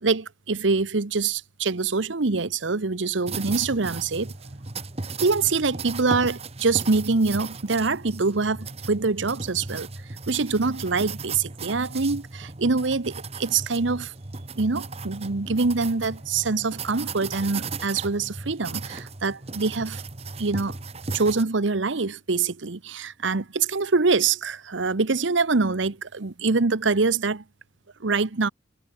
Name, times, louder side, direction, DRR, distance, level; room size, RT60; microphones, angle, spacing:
voice 1, 0.0-4.3 5.2-9.9 10.3-14.1 14.6-20.0 20.4-20.7 21.1-27.4 28.0-28.5, right 4 dB, 80° right, 1.0 m, -24 dB
sound 1, 3.3-21.4, right 3 dB, 35° right, 1.2 m, -36 dB
head